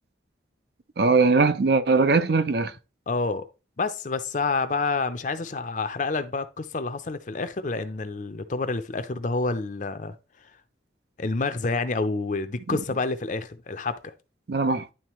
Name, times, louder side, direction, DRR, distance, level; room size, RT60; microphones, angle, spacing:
voice 1, 1.0-2.7 12.7-12.8 14.5-14.9, right 4 dB, 55° right, 0.5 m, -20 dB
voice 2, 3.1-3.5 3.8-10.1 11.2-14.0, left 3 dB, 40° left, 0.5 m, -28 dB
10.5 x 3.8 x 3.0 m
head